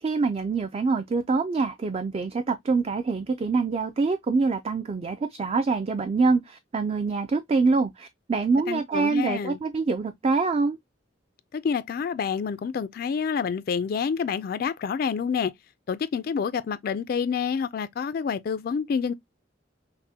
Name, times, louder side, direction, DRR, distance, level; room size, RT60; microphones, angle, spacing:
voice 1, 0.0-10.8, right 4 dB, 35° right, 0.3 m, -25 dB
voice 2, 8.7-9.6 11.5-15.5 15.9-19.1, left 6 dB, 50° left, 0.3 m, -28 dB
5.8 x 2.1 x 2.7 m
head